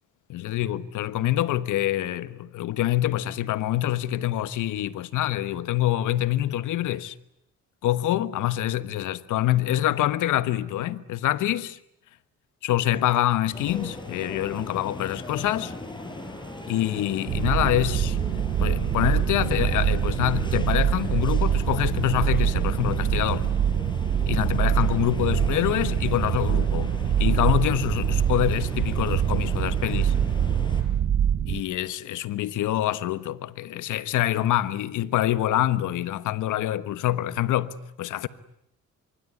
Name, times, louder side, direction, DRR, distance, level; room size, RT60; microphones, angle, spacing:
voice 1, 0.3-7.1 7.8-11.8 12.6-15.7 16.7-18.2 18.6-23.4 24.2-30.1 31.5-38.3, left 13 dB, 85° left, 1.3 m, -26 dB
sound 1, 13.5-30.8, left 2 dB, 15° left, 7.0 m, -38 dB
sound 2, 17.3-31.6, right 9 dB, 55° right, 1.1 m, -24 dB
25.5 x 24.0 x 9.7 m
cardioid pair, 90°, 30 cm